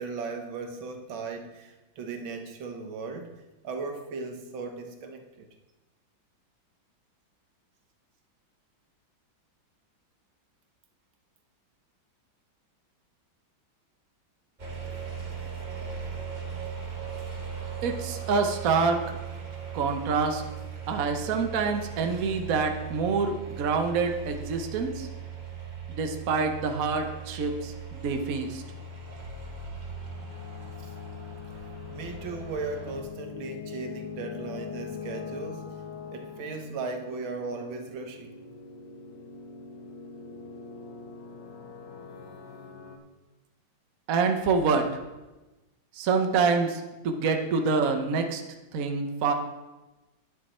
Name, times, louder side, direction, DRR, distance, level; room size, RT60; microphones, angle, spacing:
voice 1, 0.0-3.3 3.6-5.5 30.8-30.9 31.9-35.7 36.1-38.4, right 4 dB, 80° right, 5 dB, 1.8 m, -37 dB
sound 1, 14.6-33.0, right 6 dB, 25° right, 1.3 m, -39 dB
voice 2, 17.8-19.2 19.7-20.4 20.9-25.1 25.9-28.6 44.1-44.9 45.9-48.4 48.7-49.3, right 4 dB, 55° right, 4 dB, 1.2 m, -26 dB
sound 2, 28.3-43.0, left 6 dB, 80° left, 1.8 m, -43 dB
9.9 x 9.7 x 4.3 m, 1.1 s
omnidirectional pair, 2.2 m